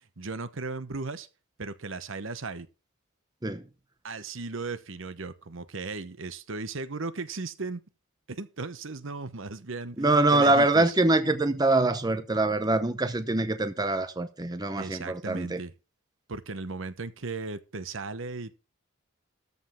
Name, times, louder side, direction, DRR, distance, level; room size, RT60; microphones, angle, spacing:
voice 1, 0.2-1.3 1.6-2.7 4.0-7.8 8.3-10.0 10.3-11.0 14.8-15.7 16.3-18.6, right 3 dB, 65° right, 1.0 m, -36 dB
voice 2, 10.0-15.6, right 2 dB, 20° right, 0.8 m, -24 dB
13.5 x 5.3 x 6.7 m
head